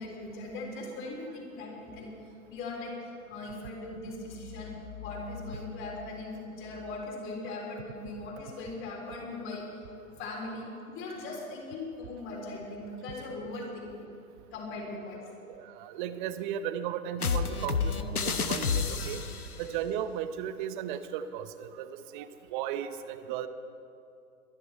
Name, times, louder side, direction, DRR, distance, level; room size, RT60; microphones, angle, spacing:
voice 1, 0.0-2.1 2.5-9.7 10.2-14.1 14.5-15.2 18.0-18.6 19.0-19.2, left 2 dB, 30° left, -1 dB, 3.9 m, -39 dB
voice 2, 15.4-17.9 18.2-19.2 19.6-23.5, right 9 dB, 35° right, 12 dB, 0.9 m, -36 dB
sound 1, 17.2-19.5, left 5 dB, 85° left, 1.1 m, -29 dB
22.5 x 11.0 x 4.5 m, 2.5 s
figure-of-eight pair, 105°, 43 cm